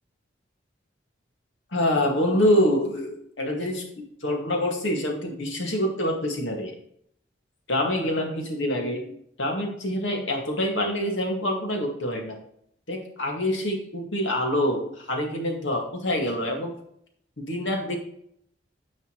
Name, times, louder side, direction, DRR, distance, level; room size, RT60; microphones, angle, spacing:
voice 1, 1.7-6.7 7.7-9.1 9.4-12.4 12.9-16.7 17.4-18.0, left 1 dB, 85° left, 1 dB, 2.1 m, -26 dB
10.0 x 5.6 x 3.1 m, 0.69 s
head